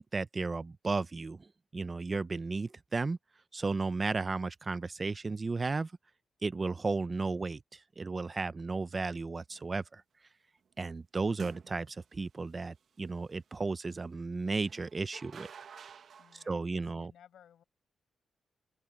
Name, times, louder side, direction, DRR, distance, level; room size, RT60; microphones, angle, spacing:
voice 1, 0.0-3.2 3.5-5.9 6.4-10.0 10.8-15.5 16.5-17.1, right 3 dB, 25° right, 0.5 m, -34 dB
sound 1, 9.5-9.8 11.3-12.1 14.7-16.5, right 7 dB, 55° right, 1.1 m, -50 dB
voice 2, 16.2-17.6, left 9 dB, 75° left, 5.7 m, -60 dB
open air
wide cardioid pair, 145°, 0 cm